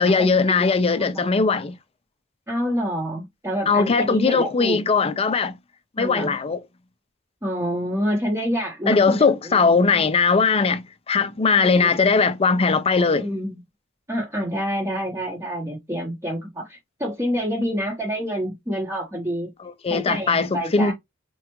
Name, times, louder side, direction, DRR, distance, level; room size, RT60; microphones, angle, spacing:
voice 1, 0.0-1.7 3.7-5.5 6.0-6.6 8.9-13.3 19.6-20.9, left 4 dB, 30° left, 0.5 m, -20 dB
voice 2, 2.5-4.8 6.0-6.4 7.4-9.6 11.8-11.9 13.2-13.6 14.1-19.5 19.9-20.9, equal, 15° right, 0.9 m, -27 dB
4.4 x 2.4 x 2.9 m
head